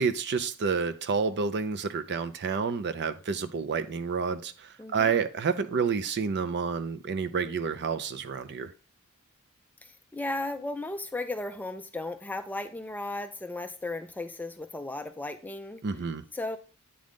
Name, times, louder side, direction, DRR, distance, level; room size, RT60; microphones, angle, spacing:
voice 1, 0.0-8.7 15.8-16.2, right 5 dB, 50° right, 11 dB, 0.5 m, -29 dB
voice 2, 4.8-5.2 9.8-15.8 16.3-16.6, left 2 dB, 10° left, 8 dB, 0.3 m, -35 dB
8.5 x 3.8 x 3.5 m, 0.35 s
head